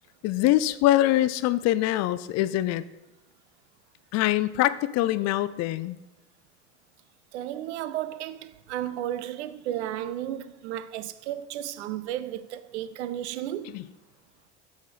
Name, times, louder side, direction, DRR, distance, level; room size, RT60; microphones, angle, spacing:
voice 1, 0.2-2.8 4.1-6.0 13.7-13.8, left 15 dB, 50° left, 0.5 m, -24 dB
voice 2, 7.3-13.7, right 12 dB, 85° right, 0.5 m, -33 dB
7.1 x 4.2 x 4.9 m
hypercardioid pair, 80°, 33 cm